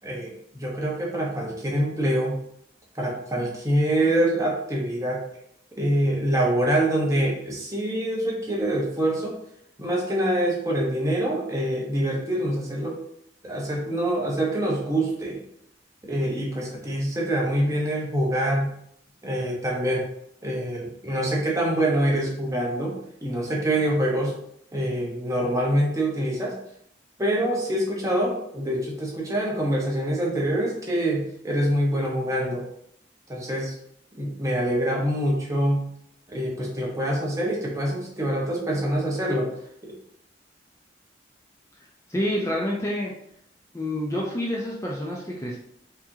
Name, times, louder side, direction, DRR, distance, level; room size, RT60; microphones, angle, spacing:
voice 1, 0.0-2.4 2.9-5.2 5.8-9.3 9.8-13.0 13.4-15.4 16.0-18.7 19.2-20.1 20.4-23.0 23.2-24.3 24.7-26.5 27.2-32.6 33.3-33.8 34.2-35.8 36.3-39.5, right 1 dB, 15° right, -2 dB, 0.9 m, -25 dB
voice 2, 42.1-43.1 43.7-45.6, left 1 dB, 15° left, -3 dB, 0.5 m, -28 dB
4.7 x 2.8 x 2.7 m, 0.70 s
head